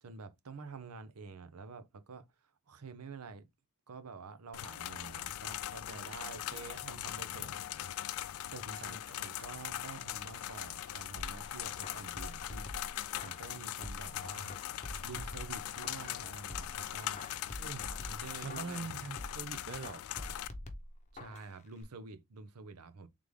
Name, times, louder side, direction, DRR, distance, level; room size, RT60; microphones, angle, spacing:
voice 1, 0.0-3.5 3.9-7.9 8.2-14.6 15.0-17.2 17.9-19.1 21.1-23.1, right 4 dB, 90° right, 0.7 m, -49 dB
sound 1, 4.5-20.5, left 12 dB, 75° left, 0.3 m, -41 dB
sound 2, 8.6-12.2 13.6-15.5, right 2 dB, 15° right, 1.7 m, -63 dB
sound 3, 11.2-14.2 14.5-16.2 16.5-19.5 19.8-21.5 21.8-21.9, left 1 dB, 30° left, 0.8 m, -46 dB
voice 2, 18.4-20.3, right 4 dB, 50° right, 0.5 m, -43 dB
3.8 x 3.4 x 3.2 m
head